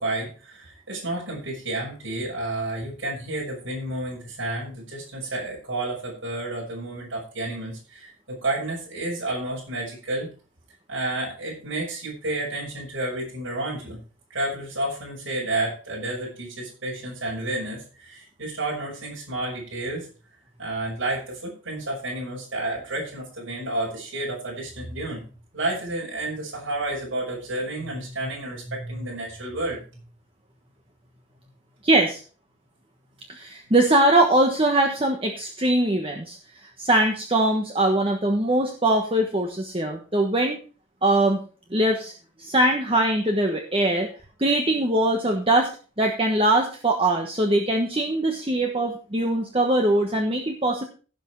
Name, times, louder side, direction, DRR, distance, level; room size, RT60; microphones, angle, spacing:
voice 1, 0.0-10.3 10.9-14.0 14.3-20.1 20.6-25.3 25.5-29.9, right 2 dB, 80° right, -4 dB, 5.9 m, -30 dB
voice 2, 31.8-32.2 33.3-36.4 36.8-40.6 41.0-41.4 41.7-42.1 42.4-44.1 44.4-45.7 46.0-50.8, right 1 dB, 30° right, 2 dB, 1.3 m, -22 dB
16.5 x 6.1 x 4.6 m, 0.38 s
head